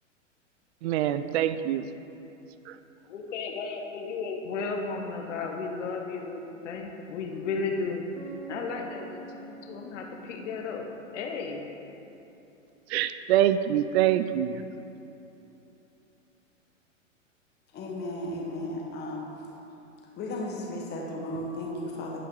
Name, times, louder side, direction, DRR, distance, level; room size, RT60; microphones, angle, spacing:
voice 1, 0.8-1.9 12.9-14.6, right 11 dB, 55° right, 12 dB, 0.5 m, -25 dB
voice 2, 3.1-10.8 11.1-11.6, left 4 dB, 65° left, 2 dB, 1.2 m, -34 dB
Bass guitar, 8.2-11.8, right 4 dB, 75° right, 1.4 m, -47 dB
voice 3, 17.7-19.3 20.2-22.2, left 1 dB, 25° left, -2 dB, 1.5 m, -35 dB
11.0 x 5.3 x 3.9 m, 2.9 s
hypercardioid pair, 120°, 38 cm